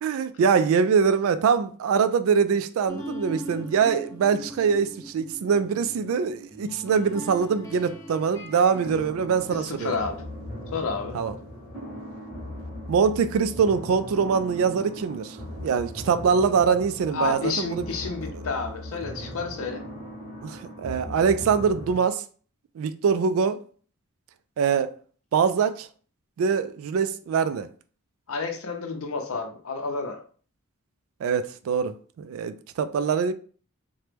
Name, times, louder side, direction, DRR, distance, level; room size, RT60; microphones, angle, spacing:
voice 1, 0.0-9.9 11.1-11.3 12.9-17.8 18.3-18.4 20.4-22.2 22.8-23.6 24.6-24.9 25.3-25.9 26.4-27.7 31.2-33.3, right 6 dB, 75° right, 0.3 m, -23 dB
sound 1, 2.9-8.9, equal, 15° left, 0.5 m, -40 dB
sound 2, 8.8-21.9, equal, ahead, 0.9 m, -38 dB
voice 2, 9.7-10.2 10.7-11.2 17.1-19.8 28.3-30.2, left 4 dB, 80° left, 0.6 m, -30 dB
2.9 x 2.1 x 3.3 m
head